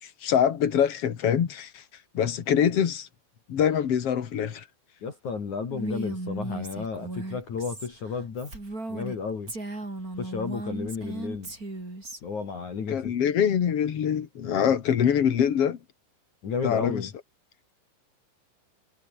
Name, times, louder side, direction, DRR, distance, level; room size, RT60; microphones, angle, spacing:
voice 1, 0.0-1.8 2.1-3.1 3.5-4.6 12.9-15.8 16.6-17.1, left 8 dB, 80° left, 1.3 m, -24 dB
voice 2, 5.0-8.5 8.9-9.5 10.2-11.5 12.2-13.1 16.4-17.1, left 5 dB, 40° left, 3.8 m, -32 dB
Female speech woman speaking, 5.7-9.2 9.5-12.2, right 2 dB, 15° right, 6.0 m, -36 dB
omnidirectional pair, 5.8 m